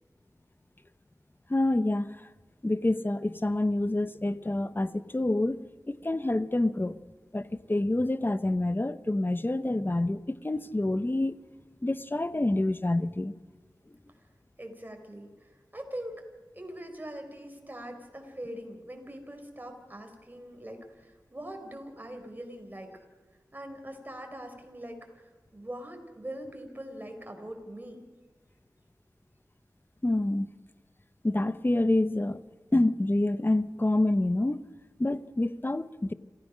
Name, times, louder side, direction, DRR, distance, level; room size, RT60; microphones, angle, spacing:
voice 1, 1.5-2.2 2.6-7.0 7.3-11.3 11.8-13.3 30.0-30.5 31.2-32.4 32.7-34.7 35.0-36.1, left 2 dB, 30° left, 0.9 m, -27 dB
voice 2, 14.6-16.2 16.6-22.9 23.5-28.0, right 1 dB, 25° right, 4.5 m, -42 dB
27.0 x 16.0 x 6.4 m
wide cardioid pair, 60°, 7 cm